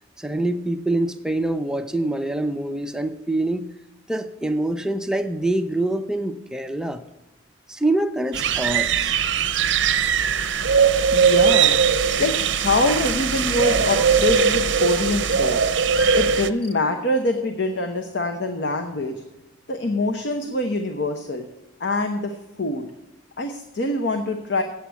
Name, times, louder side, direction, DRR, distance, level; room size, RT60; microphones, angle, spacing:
voice 1, 0.2-3.7 4.1-7.0 7.7-9.2, right 1 dB, 5° right, 7 dB, 0.5 m, -25 dB
sound 1, 8.3-16.5, right 6 dB, 65° right, 0.6 m, -20 dB
voice 2, 9.9-11.8 12.2-15.7 16.1-19.2 19.7-21.5 21.8-22.9 23.4-24.6, left 2 dB, 60° left, 5 dB, 0.9 m, -25 dB
sound 2, 11.5-16.7, left 2 dB, 30° left, 0.9 m, -43 dB
8.3 x 7.7 x 8.2 m, 0.98 s
head